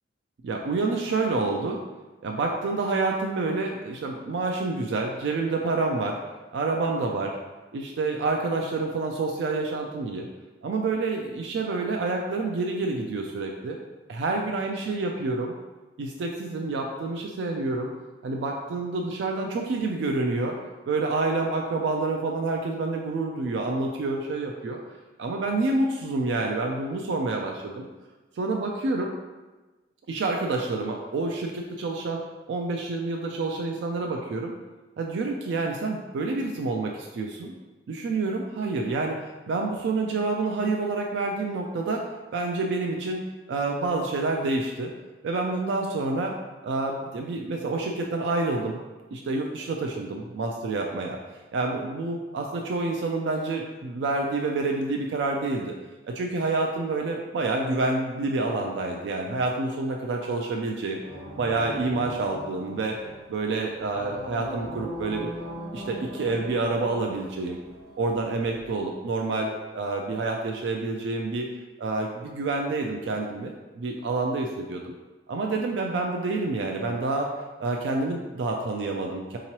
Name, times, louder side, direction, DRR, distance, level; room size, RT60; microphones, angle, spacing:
voice 1, 0.4-1.8 2.2-6.2 6.5-7.4 7.7-10.3 10.6-13.8 14.1-15.5 16.0-17.9 18.2-20.6 20.9-24.8 25.2-27.9 28.4-29.1 30.1-32.2 32.5-34.5 35.0-37.5 37.9-42.0 42.3-43.2 43.5-44.9 45.2-46.4 46.6-48.8 49.1-51.2 51.5-55.7 56.1-61.0 61.4-63.0 63.3-65.3 65.7-67.6 68.0-71.5 71.8-74.9 75.3-77.3 77.6-79.4, right 3 dB, 80° right, 1 dB, 0.3 m, -28 dB
sound 1, 61.0-68.7, equal, 65° right, 0.7 m, -41 dB
3.6 x 2.9 x 2.9 m, 1.2 s
head